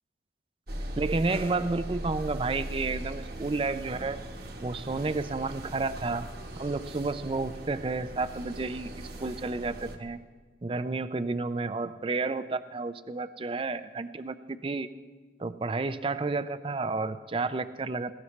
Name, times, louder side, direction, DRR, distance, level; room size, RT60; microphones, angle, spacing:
sound 1, 0.7-10.0, right 1 dB, 55° right, 1.3 m, -39 dB
voice 1, 1.0-4.2 4.6-6.3 6.6-10.2 10.6-14.9 15.4-18.1, right 3 dB, 30° right, 12 dB, 0.4 m, -31 dB
19.0 x 16.5 x 3.2 m, 1.4 s
head